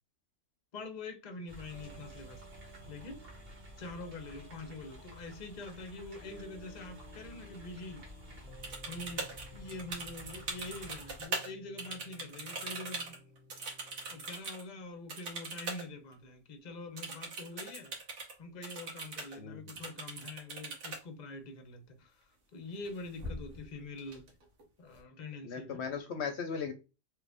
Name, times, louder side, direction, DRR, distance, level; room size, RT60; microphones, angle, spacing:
voice 1, 0.7-2.4 2.9-3.2 3.8-8.1 8.9-13.2 13.7-13.8 14.1-17.9 18.4-22.2 22.5-24.3 24.8-25.8, left 2 dB, 40° left, 0.8 m, -45 dB
sound 1, 1.5-14.3, equal, 15° left, 1.4 m, -56 dB
sound 2, 1.5-11.3, equal, 55° right, 1.4 m, -52 dB
sound 3, 8.6-11.5 11.8-14.6 15.1-15.9 16.1-16.2 17.0-18.3 18.6-19.4 19.7-21.0 22.7-22.9 23.2-23.6 24.0-24.6, right 3 dB, 75° right, 1.4 m, -41 dB
voice 2, 19.4-19.7 25.4-26.7, left 6 dB, 70° left, 0.9 m, -37 dB
3.1 x 2.4 x 3.4 m
omnidirectional pair, 1.2 m